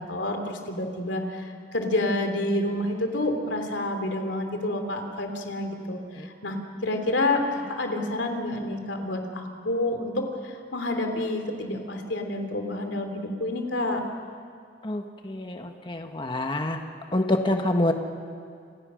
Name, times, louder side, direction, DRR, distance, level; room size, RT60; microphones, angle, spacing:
voice 1, 0.0-6.6 6.8-14.0, left 1 dB, 90° left, 5 dB, 3.3 m, -29 dB
voice 2, 14.8-16.8 17.1-17.9, left 1 dB, 25° left, 4 dB, 1.3 m, -26 dB
29.0 x 27.5 x 6.4 m, 2.3 s
head